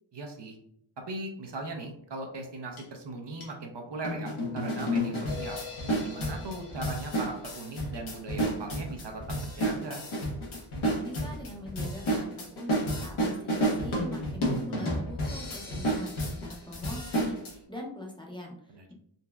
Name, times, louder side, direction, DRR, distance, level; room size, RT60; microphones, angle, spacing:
voice 1, 0.1-0.6 1.1-5.6 6.0-10.0 18.7-18.9, right 2 dB, 60° right, 3 dB, 0.7 m, -39 dB
sound 1, 2.8-2.9 3.4-3.5 4.0-17.5, equal, 80° left, 1.1 m, -31 dB
voice 2, 10.7-18.9, left 1 dB, 10° left, -1 dB, 0.6 m, -42 dB
3.9 x 2.1 x 2.3 m, 0.70 s
wide cardioid pair, 105°, 48 cm